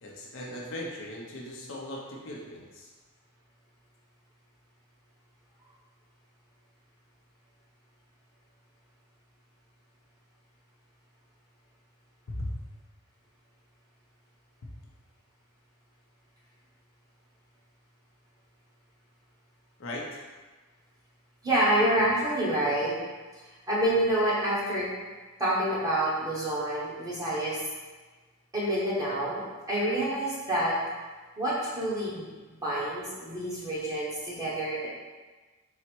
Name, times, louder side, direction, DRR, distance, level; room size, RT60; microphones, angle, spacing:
voice 1, 0.0-2.9 12.3-12.5 19.8-20.2, left 1 dB, 60° left, -3 dB, 0.6 m, -38 dB
voice 2, 21.4-22.9 23.7-24.8 25.4-27.6 28.5-30.7 31.4-32.3 32.6-34.9, right 1 dB, 15° right, -8 dB, 1.0 m, -27 dB
4.0 x 2.1 x 4.4 m, 1.3 s
head